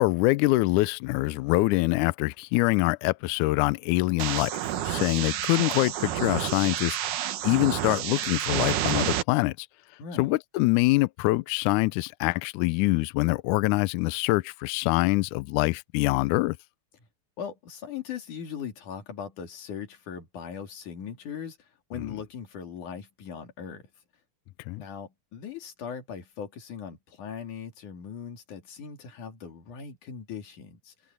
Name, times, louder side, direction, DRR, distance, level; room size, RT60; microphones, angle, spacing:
voice 1, 0.0-4.5 4.9-7.0 7.4-9.5 10.2-16.6 21.9-22.1 24.7-24.8, left 21 dB, 90° left, 1.7 m, -24 dB
sound 1, 4.2-9.2, right 11 dB, 70° right, 2.5 m, -29 dB
voice 2, 10.0-10.3 17.4-21.6 21.9-23.9 24.8-30.9, left 7 dB, 60° left, 3.9 m, -39 dB
omnidirectional pair, 4.2 m